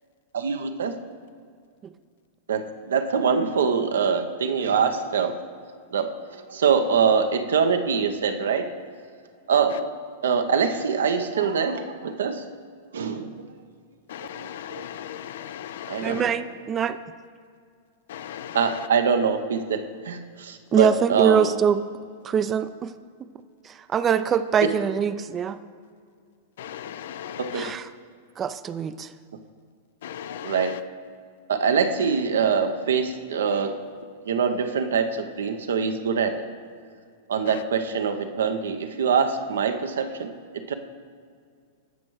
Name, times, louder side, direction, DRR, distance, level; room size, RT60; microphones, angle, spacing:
voice 1, 0.3-0.9 2.5-5.3 5.9-8.6 9.5-9.7 10.2-12.4 12.9-13.3 14.3-14.5 14.7-14.8 15.9-16.3 18.5-19.8 20.0-21.5 27.4-27.6 30.4-30.7 31.5-33.7 34.3-36.4 37.3-40.3 40.7-40.8, right 6 dB, 75° right, 0.7 m, -24 dB
voice 2, 14.1-16.2 18.1-18.9 26.6-27.7 30.0-30.8 37.5-37.6, left 10 dB, 65° left, 0.4 m, -37 dB
voice 3, 16.0-17.0 20.7-21.8 22.2-22.9 23.7-25.6 27.5-27.8 28.4-29.1, right 7 dB, 25° right, 0.4 m, -23 dB
17.5 x 6.2 x 3.1 m
hypercardioid pair, 100°, 0 cm